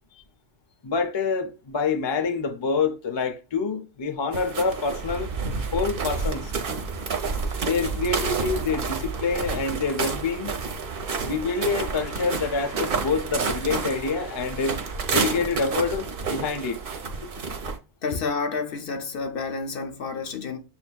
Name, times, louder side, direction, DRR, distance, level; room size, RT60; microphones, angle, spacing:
voice 1, 0.8-5.3 5.7-6.5 7.6-10.5 11.2-14.8 15.1-16.8 17.2-17.3, left 4 dB, 35° left, 0.5 m, -26 dB
sound 1, 4.3-17.8, right 4 dB, 60° right, 0.9 m, -30 dB
voice 2, 18.0-20.6, left 4 dB, 60° left, 0.8 m, -30 dB
7.1 x 2.6 x 2.2 m
omnidirectional pair, 1.1 m